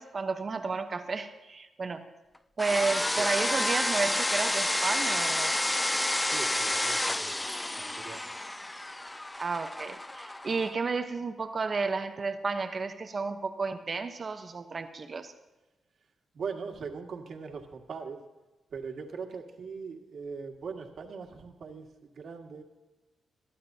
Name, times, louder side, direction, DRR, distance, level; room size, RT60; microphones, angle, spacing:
voice 1, 0.0-2.1 2.6-5.6 9.4-15.3, right 4 dB, 40° right, 7 dB, 1.0 m, -32 dB
sound 1, 2.6-10.7, left 1 dB, 15° left, 0.4 m, -30 dB
voice 2, 6.2-7.4 7.9-8.3 16.3-18.2 18.7-22.6, right 5 dB, 65° right, 2 dB, 2.0 m, -40 dB
22.0 x 12.0 x 2.8 m, 1.1 s
cardioid pair, 85°, 0 cm